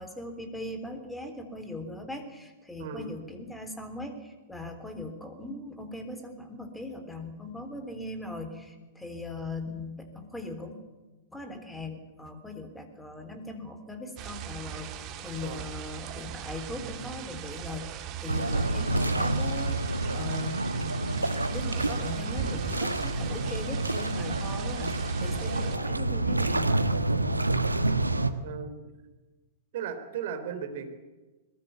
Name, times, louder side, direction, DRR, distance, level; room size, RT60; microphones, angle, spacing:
voice 1, 0.0-10.7 11.3-19.8 20.1-26.7, left 2 dB, 5° left, 7 dB, 3.6 m, -40 dB
sound 1, 14.2-25.8, right 10 dB, 35° right, 2.5 m, -39 dB
sound 2, 18.3-28.3, right 2 dB, 85° right, 1.4 m, -28 dB
voice 2, 28.4-28.9 29.7-30.9, right 7 dB, 50° right, 7 dB, 3.5 m, -36 dB
21.5 x 20.5 x 8.5 m, 1.2 s
figure-of-eight pair, 105°, 0 cm